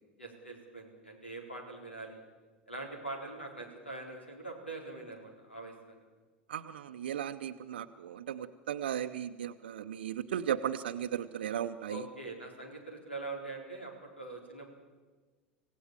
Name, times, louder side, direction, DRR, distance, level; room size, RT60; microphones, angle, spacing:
voice 1, 0.2-2.2 2.7-6.0 11.9-14.7, right 2 dB, 85° left, 3 dB, 4.1 m, -43 dB
voice 2, 6.5-12.0, right 10 dB, 65° right, 7 dB, 0.8 m, -36 dB
26.0 x 16.5 x 7.5 m, 1.4 s
figure-of-eight pair, 75°, 6 cm